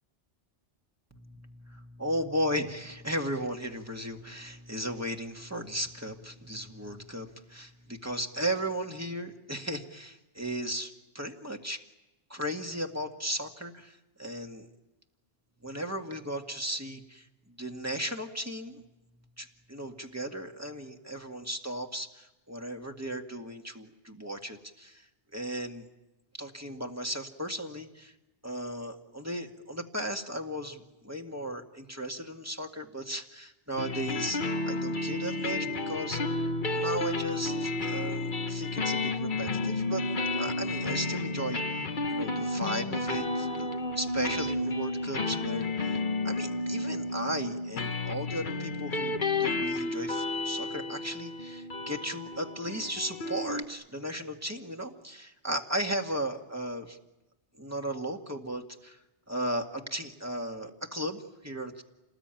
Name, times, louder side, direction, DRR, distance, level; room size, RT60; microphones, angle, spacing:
voice 1, 1.1-11.8 12.3-14.7 15.6-18.8 19.4-25.1 25.3-25.9 26.3-28.1 28.4-34.4 34.7-40.0 40.4-41.8 42.1-57.0 57.6-59.0 59.3-61.8, right 1 dB, 15° right, 3 dB, 2.0 m, -36 dB
sound 1, 33.8-53.6, left 2 dB, 50° left, 1.3 m, -32 dB
29.5 x 20.0 x 9.1 m, 1.0 s
omnidirectional pair, 1.1 m